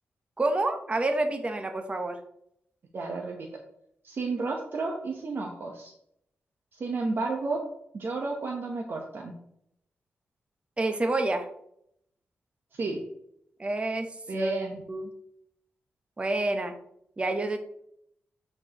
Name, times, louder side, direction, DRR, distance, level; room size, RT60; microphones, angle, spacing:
voice 1, 0.4-2.2 10.8-11.5 13.6-14.5 14.9-15.1 16.2-16.7 17.2-17.6, right 2 dB, 25° right, 5 dB, 0.8 m, -28 dB
voice 2, 2.9-3.5 4.0-5.9 6.7-7.6 7.9-9.3 12.7-13.0 14.3-14.8, right 3 dB, 55° right, 1 dB, 1.0 m, -31 dB
11.0 x 4.5 x 3.0 m, 0.73 s
wide cardioid pair, 110°, 5 cm